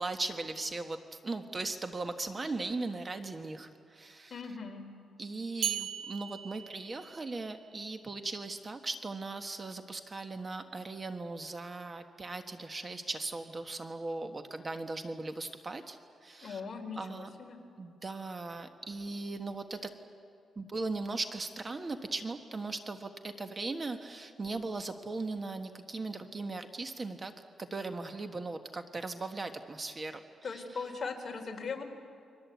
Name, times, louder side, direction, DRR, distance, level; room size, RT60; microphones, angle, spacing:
voice 1, 0.0-4.4 5.2-16.0 16.2-16.6 17.0-17.3 17.8-19.9 20.6-27.3 27.6-30.6, right 3 dB, 25° right, 7 dB, 1.3 m, -38 dB
voice 2, 4.3-4.9 16.4-17.6 30.4-31.8, left 5 dB, 40° left, 2 dB, 3.9 m, -39 dB
sound 1, 5.6-7.7, right 9 dB, 65° right, 1.6 m, -38 dB
29.5 x 23.5 x 8.3 m, 2.4 s
cardioid pair, 125°, 0 cm